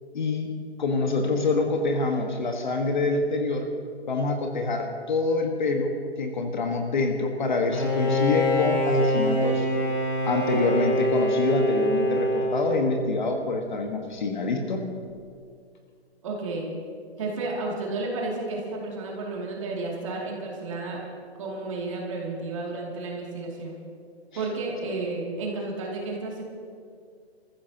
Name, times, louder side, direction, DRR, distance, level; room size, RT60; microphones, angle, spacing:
voice 1, 0.1-3.7 4.1-9.7 10.3-14.9, left 3 dB, 45° left, 4 dB, 1.5 m, -26 dB
Bowed string instrument, 7.7-13.3, equal, 15° left, 1.2 m, -25 dB
voice 2, 16.2-16.7 17.2-21.0 21.4-23.8 24.4-26.4, right 3 dB, 30° right, -2 dB, 2.5 m, -32 dB
26.5 x 14.5 x 2.9 m, 2.2 s
hypercardioid pair, 175°, 33 cm